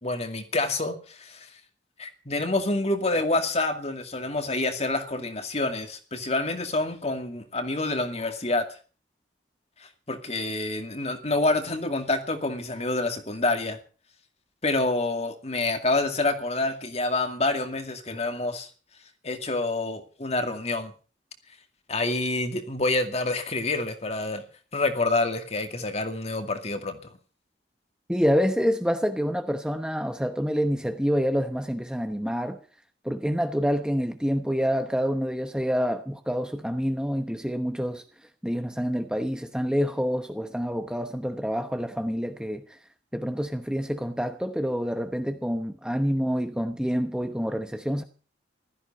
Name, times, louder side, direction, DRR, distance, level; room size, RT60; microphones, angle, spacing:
voice 1, 0.0-1.5 2.0-8.7 9.8-13.8 14.6-18.7 19.2-20.9 21.9-24.4 24.7-27.2, left 2 dB, 35° left, 2.3 m, -27 dB
voice 2, 28.1-32.6 33.0-38.0 38.4-42.8 43.1-48.0, equal, 5° right, 0.9 m, -27 dB
15.5 x 13.5 x 5.4 m
head